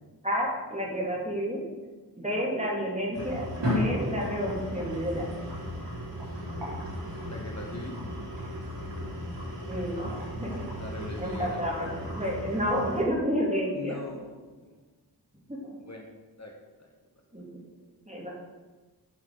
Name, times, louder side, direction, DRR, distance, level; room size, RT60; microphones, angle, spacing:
voice 1, 0.2-1.6 2.2-3.5 3.7-5.3 9.7-10.1 10.4-10.6 11.2-14.0 15.5-15.7 17.3-17.5 18.1-18.3, equal, 15° right, -2 dB, 2.7 m, -30 dB
sound 1, 3.1-13.0, equal, 80° right, 3.5 m, -35 dB
voice 2, 7.2-8.0 10.7-11.6 13.7-14.6 15.8-16.0 16.4-16.9, left 2 dB, 40° left, 1 dB, 1.4 m, -41 dB
8.5 x 6.0 x 6.6 m, 1.2 s
wide cardioid pair, 75°, 42 cm